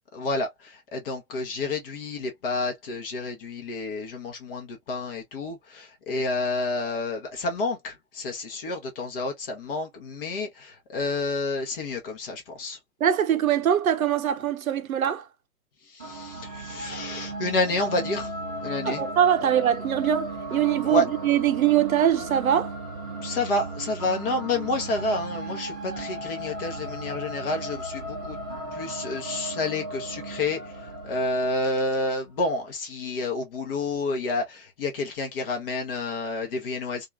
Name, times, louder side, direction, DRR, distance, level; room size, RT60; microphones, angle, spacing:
voice 1, 0.1-12.8 15.9-18.3 18.6-19.0 20.8-21.0 23.2-28.4 28.7-37.1, left 2 dB, 40° left, 0.9 m, -29 dB
voice 2, 13.0-15.3 18.8-22.7, right 10 dB, 65° right, 0.6 m, -23 dB
sound 1, 16.0-32.2, right 1 dB, 5° right, 0.3 m, -36 dB
2.8 x 2.4 x 2.4 m
figure-of-eight pair, 110°, 44 cm